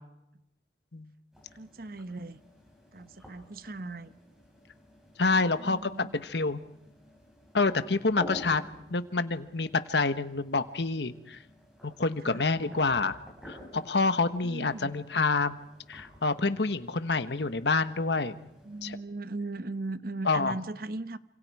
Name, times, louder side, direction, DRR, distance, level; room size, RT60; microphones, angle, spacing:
sound 1, 1.3-19.0, equal, 5° right, 7.0 m, -51 dB
voice 1, 1.5-2.4 2.9-4.1 5.6-6.2 12.2-12.4 14.4-15.0 18.6-21.2, right 2 dB, 55° right, 1.0 m, -38 dB
voice 2, 5.2-6.6 7.5-8.6 8.9-11.4 11.8-13.2 13.5-15.6 15.9-18.3 18.8-19.0 20.2-20.6, left 3 dB, 70° left, 1.2 m, -27 dB
28.5 x 26.5 x 4.8 m
head